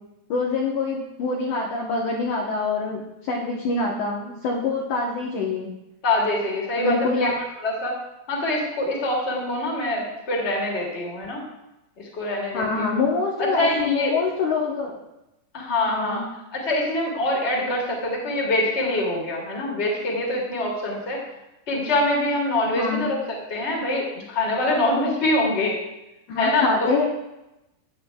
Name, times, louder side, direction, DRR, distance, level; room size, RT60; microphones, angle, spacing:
voice 1, 0.3-5.7 6.8-7.4 12.5-15.0 15.9-16.2 22.8-23.1 26.3-27.1, left 4 dB, 80° left, -2 dB, 1.8 m, -25 dB
voice 2, 6.0-7.9 8.3-11.4 12.0-12.9 13.4-14.1 15.5-16.2 16.5-21.2 21.7-25.7 26.4-26.9, left 1 dB, 25° left, -2 dB, 1.4 m, -24 dB
15.0 x 9.0 x 2.3 m, 0.93 s
omnidirectional pair, 5.1 m